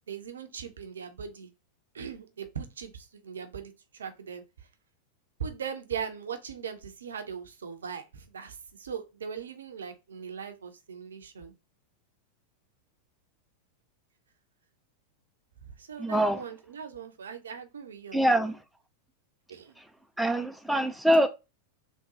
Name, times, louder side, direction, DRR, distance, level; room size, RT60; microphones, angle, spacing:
voice 1, 0.1-1.5 1.9-4.4 5.4-11.5 15.8-18.5 19.5-19.8, right 7 dB, 65° right, 0.5 m, -39 dB
voice 2, 16.0-16.4 18.1-18.5 20.2-21.3, right 1 dB, ahead, 0.3 m, -24 dB
3.7 x 2.3 x 2.7 m
figure-of-eight pair, 90°, 0 cm